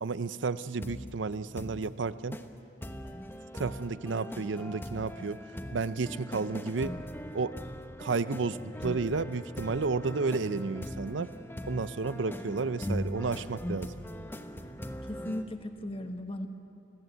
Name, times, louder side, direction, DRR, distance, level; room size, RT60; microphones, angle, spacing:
voice 1, 0.0-2.4 3.5-5.4 5.7-6.9 7.3-7.5 8.0-11.3 11.7-13.9, right 4 dB, 80° right, 14 dB, 0.6 m, -32 dB
sound 1, 0.8-1.1 1.6-1.9 2.3-2.5 2.8-15.4, equal, 10° left, 1.1 m, -40 dB
voice 2, 15.0-16.5, left 1 dB, 30° left, 6 dB, 1.3 m, -37 dB
26.0 x 17.0 x 8.0 m, 2.7 s
head